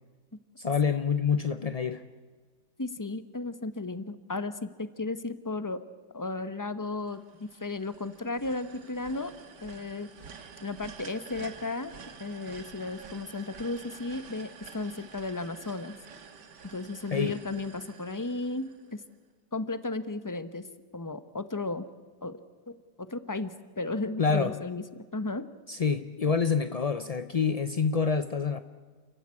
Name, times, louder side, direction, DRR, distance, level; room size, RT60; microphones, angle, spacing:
voice 1, 0.6-2.0 17.1-17.4 24.2-24.6 25.7-28.6, left 5 dB, 50° left, 10 dB, 0.4 m, -27 dB
voice 2, 2.8-5.8 6.1-9.3 9.6-10.1 10.6-11.9 12.2-15.9 16.7-19.0 19.5-20.6 20.9-21.9 22.2-22.4 22.7-25.5, left 3 dB, 15° left, 12 dB, 0.8 m, -34 dB
Rolling Metal Conveyor Belt, 7.0-19.1, right 6 dB, 85° right, 2.2 m, -49 dB
29.0 x 15.0 x 9.7 m, 1.5 s
omnidirectional pair, 1.8 m